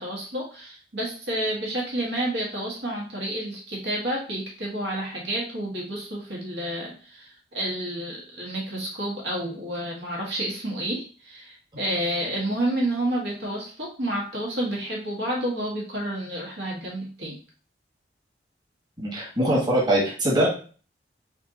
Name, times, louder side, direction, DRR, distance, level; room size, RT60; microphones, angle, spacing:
voice 1, 0.0-17.4, right 1 dB, 75° right, -3 dB, 1.3 m, -30 dB
voice 2, 19.0-20.5, right 1 dB, 25° right, -6 dB, 1.3 m, -22 dB
3.4 x 2.8 x 3.7 m, 0.40 s
head